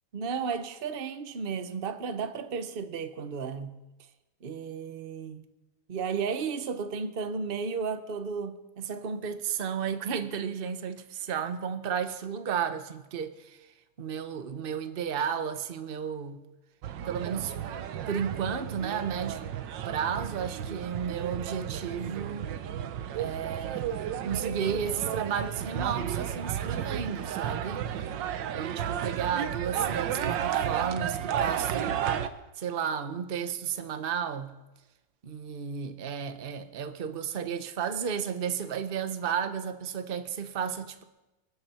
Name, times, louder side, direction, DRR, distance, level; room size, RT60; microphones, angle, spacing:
voice 1, 0.1-3.8 4.4-5.4 5.9-13.7 14.0-16.4 17.1-17.5 18.1-19.4 19.9-27.8 28.5-32.1 32.6-34.5 35.2-41.0, right 7 dB, 40° right, 0.9 m, -33 dB
sound 1, 16.8-32.3, right 9 dB, 70° right, 1.5 m, -33 dB
25.0 x 12.5 x 4.4 m
omnidirectional pair, 2.1 m